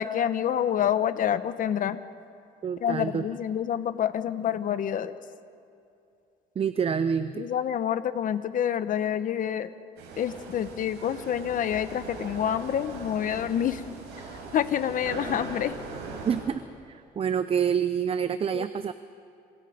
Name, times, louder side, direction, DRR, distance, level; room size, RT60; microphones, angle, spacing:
voice 1, 0.0-2.0 2.8-5.1 7.3-9.7 10.2-13.8 14.5-15.7 18.5-18.6, left 9 dB, 55° left, 12 dB, 1.1 m, -27 dB
voice 2, 2.6-3.2 6.6-7.5 16.2-16.6 16.9-18.9, right 7 dB, 35° right, 12 dB, 0.7 m, -27 dB
sound 1, 10.0-16.4, right 4 dB, 85° right, 7.1 m, -40 dB
27.0 x 26.5 x 5.2 m, 2.6 s
cardioid pair, 110°, 17 cm